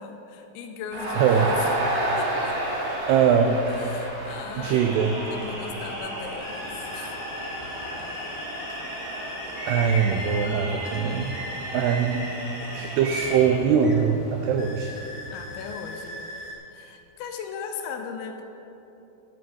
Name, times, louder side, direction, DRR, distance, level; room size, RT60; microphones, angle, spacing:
voice 1, 0.0-1.8 2.2-2.6 3.7-4.9 5.3-7.4 15.3-16.3 16.7-18.4, left 6 dB, 80° left, 5 dB, 3.1 m, -37 dB
Crowd, 0.9-6.1, right 1 dB, 65° right, 3.9 m, -29 dB
voice 2, 1.2-1.5 3.1-3.6 4.6-5.1 9.7-11.4 11.7-12.3 12.7-14.9, right 7 dB, 90° right, 5 dB, 2.3 m, -22 dB
sound 1, 4.6-13.6, equal, 40° right, 2.0 m, -35 dB
sound 2, 6.4-16.5, left 1 dB, 20° left, 2.0 m, -39 dB
11.5 x 7.9 x 7.0 m, 3.0 s
omnidirectional pair, 5.4 m